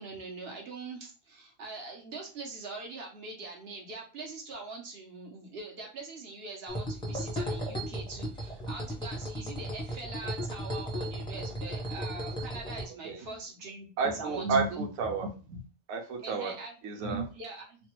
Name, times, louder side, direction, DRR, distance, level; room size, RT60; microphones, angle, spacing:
voice 1, 0.0-14.8 16.2-17.1 17.3-17.8, right 3 dB, 50° right, -1 dB, 1.0 m, -43 dB
sound 1, 6.7-12.8, equal, 5° left, 0.5 m, -35 dB
voice 2, 14.0-15.6 15.9-16.5 16.8-17.3, right 4 dB, 80° right, 2 dB, 1.0 m, -31 dB
3.2 x 2.2 x 2.9 m, 0.36 s
omnidirectional pair, 1.4 m